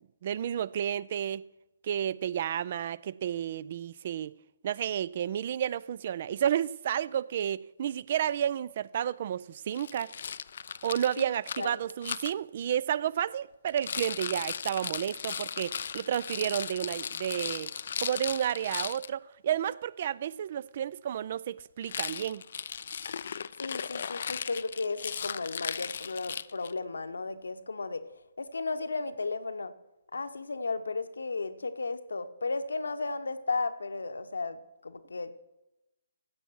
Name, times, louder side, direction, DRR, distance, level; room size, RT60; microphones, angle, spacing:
voice 1, 0.2-1.4 1.8-4.3 4.6-10.1 10.8-17.7 18.0-22.4, right 10 dB, 45° right, 0.3 m, -31 dB
Rattle, 9.7-12.3 13.7-19.1 21.8-26.8, left 7 dB, 55° left, 0.3 m, -37 dB
voice 2, 23.6-28.0 28.4-29.7 30.1-35.3, left 3 dB, 70° left, 0.9 m, -34 dB
15.5 x 8.0 x 4.7 m
figure-of-eight pair, 135°, 0 cm